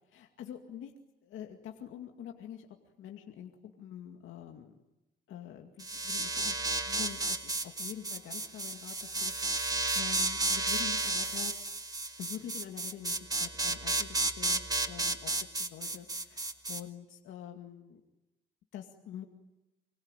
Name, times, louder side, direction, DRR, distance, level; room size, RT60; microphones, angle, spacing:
voice 1, 0.1-0.9 1.2-2.7 3.0-4.8 5.3-6.6 6.9-11.6 12.2-18.0 18.7-19.3, left 10 dB, 80° left, 3 dB, 2.3 m, -46 dB
sound 1, 5.8-16.8, right 2 dB, 20° right, 2.1 m, -32 dB
26.0 x 23.0 x 9.1 m, 0.96 s
cardioid pair, 90°, 20 cm